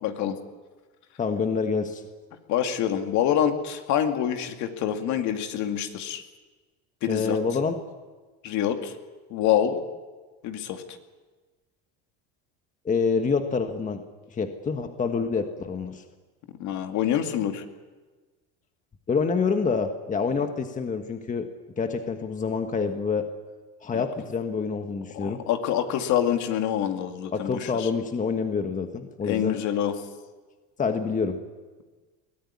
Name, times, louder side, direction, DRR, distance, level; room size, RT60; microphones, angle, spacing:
voice 1, 0.0-0.4 2.5-6.2 7.0-7.4 8.4-8.9 9.3-9.8 10.4-10.8 16.6-17.6 23.9-24.0 25.2-27.9 29.2-29.9, left 10 dB, 55° left, 6 dB, 2.4 m, -26 dB
voice 2, 1.2-2.0 7.1-7.8 12.8-14.0 14.3-16.0 19.1-21.5 21.8-23.3 23.8-25.4 27.3-29.6 30.8-31.4, left 5 dB, 20° left, 6 dB, 1.5 m, -27 dB
22.5 x 15.0 x 9.8 m, 1.3 s
supercardioid pair, 125°, 34 cm